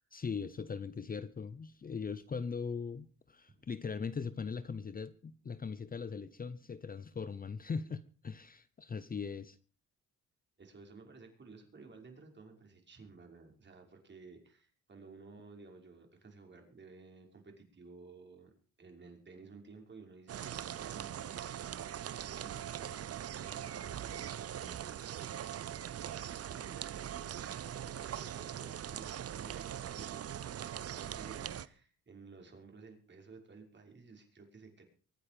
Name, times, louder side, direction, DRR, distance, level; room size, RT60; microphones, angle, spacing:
voice 1, 0.1-9.6, left 5 dB, 30° left, 0.9 m, -40 dB
voice 2, 10.6-18.5 18.8-34.8, right 4 dB, 35° right, 5.8 m, -55 dB
sound 1, 20.3-31.7, right 10 dB, 55° right, 0.9 m, -41 dB
23.5 x 9.3 x 5.2 m
cardioid pair, 90°, 30 cm